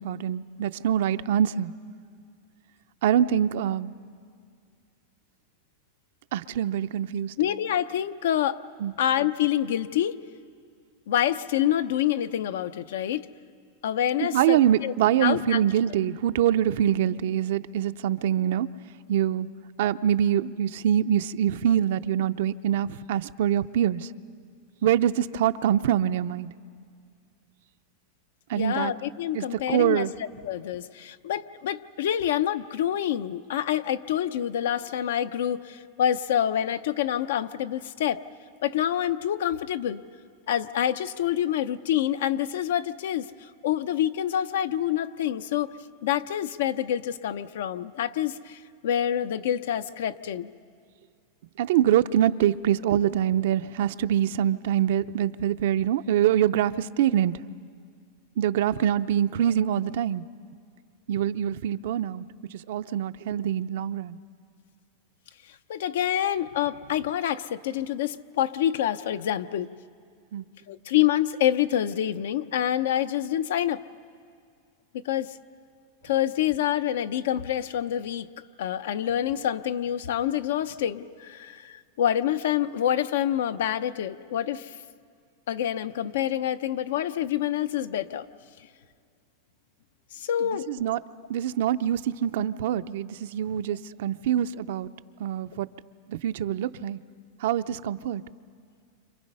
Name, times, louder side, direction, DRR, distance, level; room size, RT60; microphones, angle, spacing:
voice 1, 0.0-1.7 3.0-3.9 6.3-7.3 8.8-8.9 14.2-18.7 19.1-19.5 19.8-24.1 24.8-26.5 28.5-28.9 29.3-30.1 51.6-57.3 58.4-60.2 61.1-62.2 62.5-64.2 70.3-70.5 90.4-91.0 91.3-94.9 95.2-95.7 96.1-97.0 97.4-98.2, right 10 dB, 70° right, 12 dB, 0.6 m, -24 dB
voice 2, 7.4-8.6 9.0-10.2 11.1-13.3 13.8-14.9 15.2-15.6 28.5-30.1 30.4-38.2 38.6-40.0 40.5-45.7 46.0-50.5 65.7-69.7 70.7-73.8 75.0-75.4 76.0-78.3 78.6-84.8 85.5-88.3 90.1-90.7, left 11 dB, 80° left, 12 dB, 0.7 m, -27 dB
29.5 x 26.5 x 5.5 m, 2.2 s
supercardioid pair, 150°, 0 cm